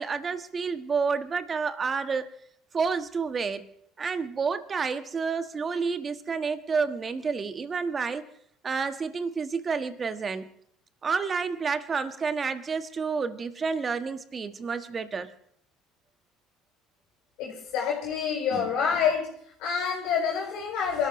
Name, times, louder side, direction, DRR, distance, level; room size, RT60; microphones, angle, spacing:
voice 1, 0.0-2.3 2.7-3.7 4.0-8.2 8.6-10.5 11.0-15.3, right 5 dB, 35° right, 1.4 m, -29 dB
voice 2, 17.4-19.3 19.6-21.1, left 7 dB, 65° left, 4.4 m, -27 dB
27.5 x 13.5 x 3.1 m
hypercardioid pair, 65°, 0 cm